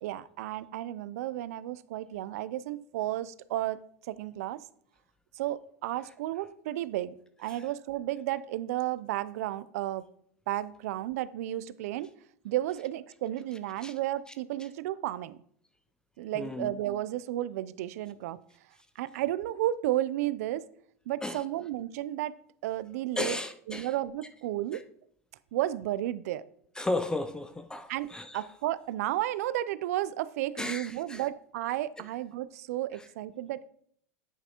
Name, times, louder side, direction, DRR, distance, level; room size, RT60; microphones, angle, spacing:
voice 1, 0.0-4.6 5.3-10.1 10.5-12.1 12.4-15.4 16.2-18.4 19.0-20.7 21.1-22.4 22.6-23.4 23.7-24.8 25.5-26.4 27.9-33.7, right 14 dB, 75° right, 0.4 m, -33 dB
voice 2, 16.4-16.7 21.2-21.4 23.2-23.9 26.8-28.5 30.6-31.2, left 2 dB, 10° left, 0.4 m, -34 dB
9.6 x 5.4 x 2.9 m
hypercardioid pair, 110°, 8 cm